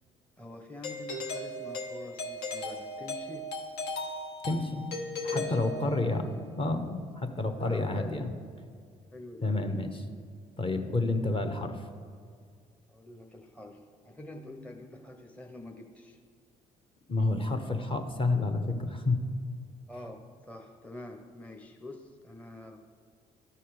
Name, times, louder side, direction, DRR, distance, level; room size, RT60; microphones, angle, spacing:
voice 1, 0.4-3.5 5.3-6.2 7.6-8.2 9.1-9.5 12.9-16.2 19.9-22.8, left 1 dB, 10° left, 3 dB, 0.8 m, -46 dB
Doorbell, 0.8-6.3, left 2 dB, 75° left, 0.9 m, -37 dB
voice 2, 4.4-4.9 5.2-6.2 6.6-8.3 9.4-10.1 10.6-11.9 17.1-19.2, left 2 dB, 30° left, 6 dB, 1.1 m, -29 dB
12.5 x 4.3 x 5.0 m, 2.1 s
hypercardioid pair, 60°, 17 cm